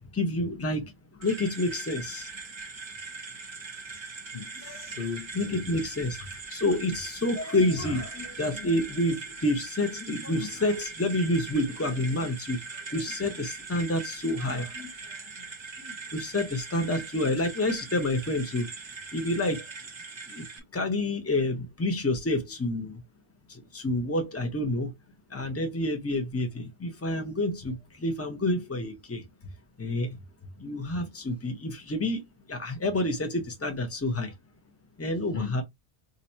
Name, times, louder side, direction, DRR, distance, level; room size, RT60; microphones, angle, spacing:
voice 1, 0.1-2.3 4.6-4.9 5.3-15.1 15.8-18.7 19.1-19.7 20.3-20.4 20.7-23.0 23.5-24.9 25.3-29.2 29.8-30.2 30.6-32.2 32.5-34.3 35.0-35.6, left 1 dB, 15° left, 0.7 m, -29 dB
sound 1, 1.2-20.6, right 4 dB, 35° right, 0.5 m, -41 dB
voice 2, 3.9-5.6 35.3-35.6, left 6 dB, 55° left, 0.7 m, -38 dB
2.8 x 2.6 x 4.3 m
omnidirectional pair, 1.1 m